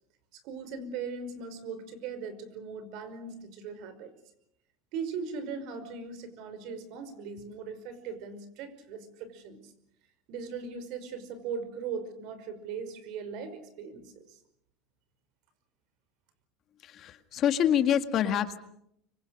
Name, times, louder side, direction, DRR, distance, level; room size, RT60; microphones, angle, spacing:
voice 1, 0.3-4.1 4.9-9.7 10.3-14.4, right 5 dB, 60° right, 12 dB, 5.4 m, -39 dB
voice 2, 16.8-18.6, left 9 dB, 40° left, 9 dB, 1.9 m, -26 dB
25.5 x 24.5 x 6.6 m, 0.74 s
supercardioid pair, 140°, 0 cm